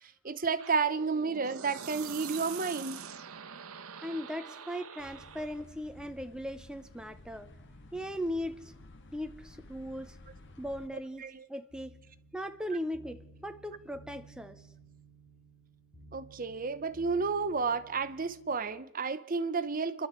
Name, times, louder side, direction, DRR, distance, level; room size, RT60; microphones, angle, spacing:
voice 1, 0.2-3.0 11.2-11.4 16.1-20.1, right 4 dB, 40° right, 0.8 m, -31 dB
sound 1, 0.6-5.6, right 7 dB, 90° right, 1.0 m, -44 dB
voice 2, 4.0-7.5 7.9-8.7 9.1-10.2 10.6-11.2 11.5-12.0 12.3-14.6, equal, 5° right, 0.7 m, -38 dB
sound 2, 5.0-10.9, left 2 dB, 55° left, 2.0 m, -53 dB
sound 3, 11.7-18.6, right 2 dB, 80° left, 2.3 m, -56 dB
29.0 x 12.0 x 8.1 m
head